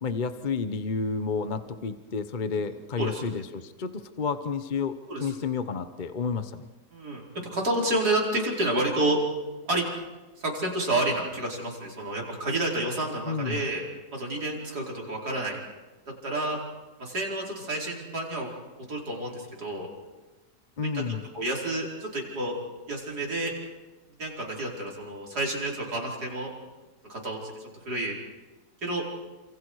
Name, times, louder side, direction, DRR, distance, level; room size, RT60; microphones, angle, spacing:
voice 1, 0.0-6.7 13.2-13.6 20.8-21.2, left 5 dB, 35° left, 10 dB, 0.9 m, -31 dB
voice 2, 6.9-7.2 7.5-9.2 9.7-9.9 10.4-13.8 14.1-15.6 16.2-16.6 17.0-18.5 18.9-19.9 20.8-21.0 21.3-22.6 22.9-23.5 24.2-26.5 27.1-27.5 27.9-28.2 28.8-29.0, right 1 dB, 60° right, -2 dB, 5.3 m, -29 dB
28.5 x 27.5 x 4.9 m, 1.1 s
omnidirectional pair, 1.9 m